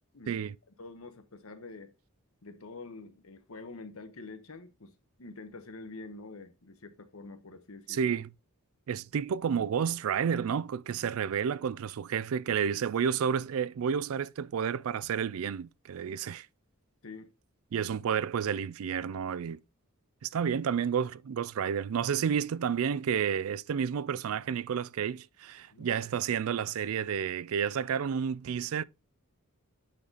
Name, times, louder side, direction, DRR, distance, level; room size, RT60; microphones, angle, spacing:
voice 1, 0.8-1.9 2.4-8.1 17.0-17.3 25.7-25.9, left 3 dB, 70° left, 1.1 m, -46 dB
voice 2, 7.9-8.3 8.9-16.5 17.7-19.6 20.2-28.8, right 7 dB, 70° right, 0.4 m, -30 dB
8.6 x 4.1 x 3.9 m
head